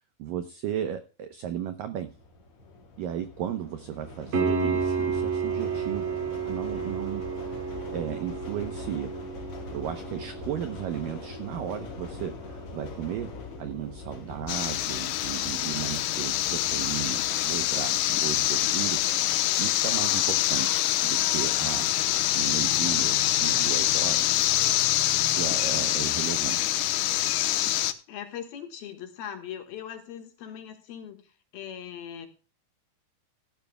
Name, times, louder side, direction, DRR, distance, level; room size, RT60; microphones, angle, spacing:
voice 1, 0.2-2.1 3.0-6.1 6.5-9.2 9.7-13.3 13.6-19.1 19.6-24.5 25.2-26.7, right 10 dB, 80° right, 8 dB, 2.0 m, -35 dB
sound 1, 2.0-18.5, left 4 dB, 40° left, 2.4 m, -43 dB
Piano, 4.3-15.0 18.3-18.4, right 5 dB, 50° right, 4.0 m, -33 dB
sound 2, 14.5-27.9, left 14 dB, 80° left, 2.9 m, -25 dB
voice 2, 22.4-23.0 26.3-27.3 28.1-32.3, left 9 dB, 65° left, 5 dB, 3.1 m, -41 dB
16.5 x 12.5 x 2.3 m, 0.36 s
omnidirectional pair, 5.1 m